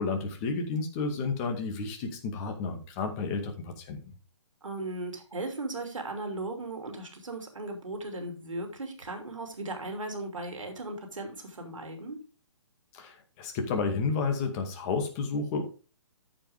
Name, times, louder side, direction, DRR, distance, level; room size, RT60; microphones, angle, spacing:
voice 1, 0.0-4.0 12.9-15.7, left 4 dB, 30° left, 4 dB, 2.2 m, -31 dB
voice 2, 4.6-12.2, right 2 dB, 90° right, 3 dB, 2.9 m, -37 dB
13.5 x 5.3 x 3.6 m, 0.35 s
hypercardioid pair, 145°, 16 cm